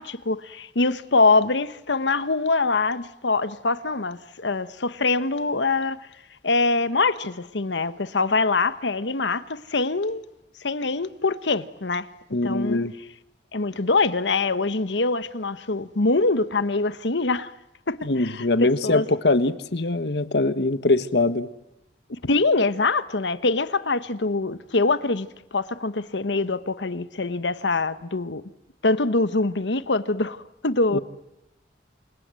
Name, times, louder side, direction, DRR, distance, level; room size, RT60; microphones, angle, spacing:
voice 1, 0.0-6.0 6.4-10.2 10.6-12.1 12.4-12.8 13.5-17.5 17.9-19.1 22.1-28.4 28.8-31.0, left 3 dB, 85° left, 1.2 m, -24 dB
voice 2, 12.3-12.9 18.0-21.5 30.9-31.0, left 2 dB, 70° left, 1.3 m, -22 dB
29.0 x 26.5 x 7.7 m
head